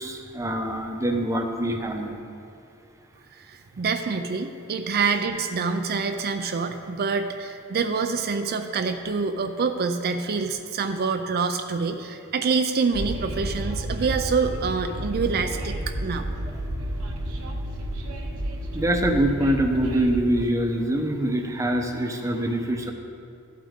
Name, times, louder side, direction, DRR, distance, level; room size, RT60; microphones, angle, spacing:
voice 1, 0.0-2.2 4.8-4.9 18.7-22.9, right 1 dB, 15° right, 3 dB, 0.8 m, -24 dB
voice 2, 3.3-16.3, right 4 dB, 45° right, 7 dB, 0.5 m, -26 dB
Train, 12.9-20.2, right 1 dB, 70° right, 0.9 m, -31 dB
13.5 x 8.5 x 3.7 m, 2.5 s
head